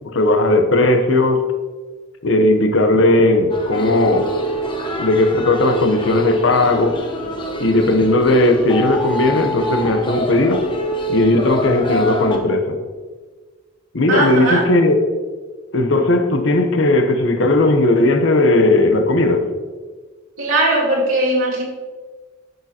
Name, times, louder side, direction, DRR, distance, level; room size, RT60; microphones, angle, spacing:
voice 1, 0.0-1.5 2.2-4.3 5.0-7.0 7.6-10.6 11.1-12.8 13.9-15.1 15.7-19.4, left 2 dB, 65° left, 6 dB, 0.8 m, -16 dB
sound 1, 3.5-12.4, equal, 25° left, 0.8 m, -25 dB
voice 2, 14.1-14.6 20.4-21.6, right 1 dB, 90° right, -4 dB, 2.4 m, -18 dB
10.5 x 6.6 x 2.9 m, 1.4 s
head